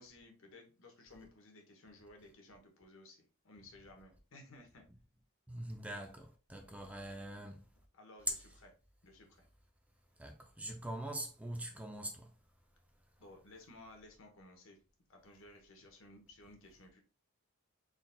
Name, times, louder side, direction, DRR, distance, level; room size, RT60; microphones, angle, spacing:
voice 1, 0.0-4.8 7.9-8.3 8.6-8.7 9.0-9.5 13.2-14.8 15.1-17.0, left 2 dB, 60° left, 1.0 m, -57 dB
voice 2, 5.5-7.7 8.3-8.4 10.2-12.3, right 1 dB, 5° right, 0.4 m, -42 dB
3.9 x 3.8 x 2.2 m
head